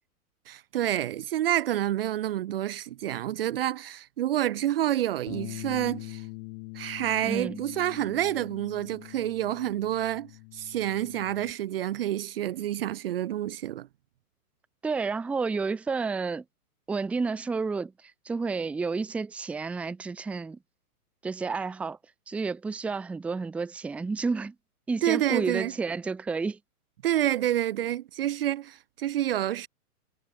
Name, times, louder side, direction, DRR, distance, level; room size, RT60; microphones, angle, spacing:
voice 1, 0.5-6.2 6.7-13.9 25.0-25.7 27.0-29.7, right 12 dB, 40° right, 0.9 m, -28 dB
Bass guitar, 5.3-11.5, left 33 dB, 30° left, 5.4 m, -43 dB
voice 2, 7.2-7.6 14.8-16.4 16.9-20.6 21.2-22.0 22.3-24.5 24.9-26.6, right 4 dB, 5° right, 0.9 m, -30 dB
hypercardioid pair, 165°, 45 cm